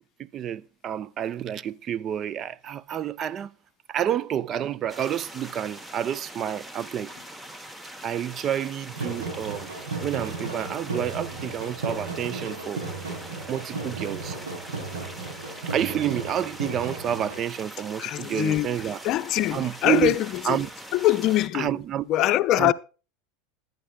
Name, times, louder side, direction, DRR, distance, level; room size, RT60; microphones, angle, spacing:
voice 1, 0.3-3.5 3.9-7.1 8.0-9.7 10.0-12.8 13.5-14.4 15.7-19.0 19.5-20.2 20.4-20.7 21.5-22.0 22.5-22.7, right 10 dB, 40° right, 0.5 m, -29 dB
sound 1, 4.9-21.5, right 1 dB, 10° right, 1.1 m, -42 dB
sound 2, 8.8-17.4, right 3 dB, 85° right, 7.5 m, -35 dB
voice 2, 18.0-20.6 20.9-21.8 22.1-22.7, left 15 dB, 50° left, 0.6 m, -23 dB
20.5 x 9.4 x 2.3 m
hypercardioid pair, 95°, 0 cm